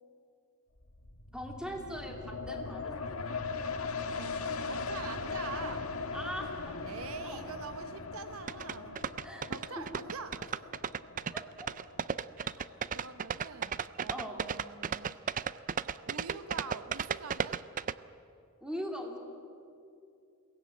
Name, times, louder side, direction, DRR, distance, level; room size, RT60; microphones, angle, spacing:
sound 1, 0.8-14.0 14.5-14.6, left 4 dB, 80° left, 1.6 m, -40 dB
voice 1, 1.3-3.0 6.1-6.9 7.2-7.5 9.2-9.8 11.3-11.4 12.4-12.6 14.1-14.4 18.6-19.2, equal, 5° right, 2 dB, 2.6 m, -41 dB
voice 2, 4.1-5.9 6.8-9.0 9.5-10.7 12.9-15.2 16.0-17.6, right 5 dB, 75° right, 10 dB, 1.0 m, -44 dB
sound 2, 8.5-17.9, right 7 dB, 40° right, 0.4 m, -34 dB
22.5 x 17.0 x 8.7 m, 2.6 s
head